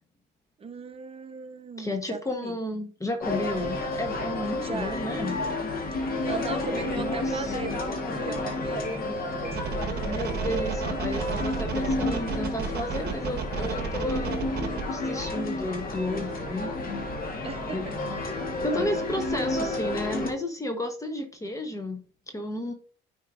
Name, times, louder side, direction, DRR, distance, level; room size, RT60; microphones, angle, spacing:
voice 1, 0.6-2.6 4.6-5.0 6.3-9.8 11.1-11.4 17.4-18.1, right 5 dB, 25° right, 1.0 m, -38 dB
voice 2, 1.8-5.4 7.0-7.5 10.0-14.5 14.9-16.7 17.7-17.9 18.6-22.7, left 1 dB, 15° left, 1.1 m, -32 dB
sound 1, 3.2-20.3, left 2 dB, 45° left, 1.4 m, -31 dB
sound 2, 9.5-14.8, right 6 dB, 50° right, 1.2 m, -32 dB
9.6 x 4.5 x 2.5 m
supercardioid pair, 90°, 21 cm